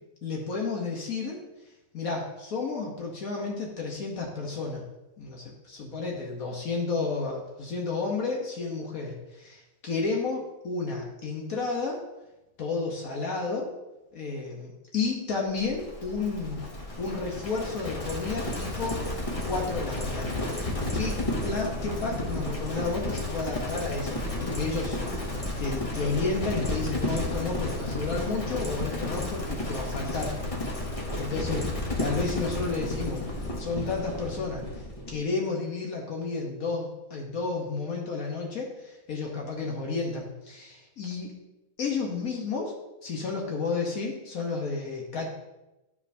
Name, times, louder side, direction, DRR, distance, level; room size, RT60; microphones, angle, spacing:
voice 1, 0.2-1.4 1.9-4.8 5.2-12.0 12.6-13.7 14.1-16.6 17.0-19.0 19.4-20.3 20.9-25.3 25.6-30.3 31.2-31.7 32.0-33.2 33.6-34.6 35.1-41.3 41.8-45.3, left 4 dB, 60° left, -1 dB, 1.4 m, -31 dB
Livestock farm animals working animals, 15.6-35.2, left 1 dB, 30° left, 0.7 m, -32 dB
11.0 x 4.8 x 2.7 m, 1.0 s
omnidirectional pair, 1.7 m